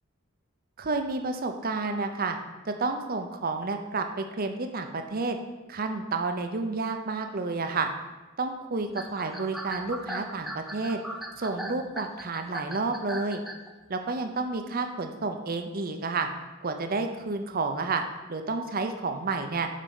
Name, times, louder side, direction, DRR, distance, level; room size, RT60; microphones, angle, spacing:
voice 1, 0.8-2.4 2.6-5.4 5.7-7.9 8.4-11.0 11.4-13.4 13.9-16.3 16.6-18.0 18.3-19.7, right 3 dB, 45° right, 6 dB, 0.8 m, -30 dB
sound 1, 8.9-13.7, equal, ahead, 0.7 m, -38 dB
7.5 x 5.2 x 7.1 m, 1.2 s
head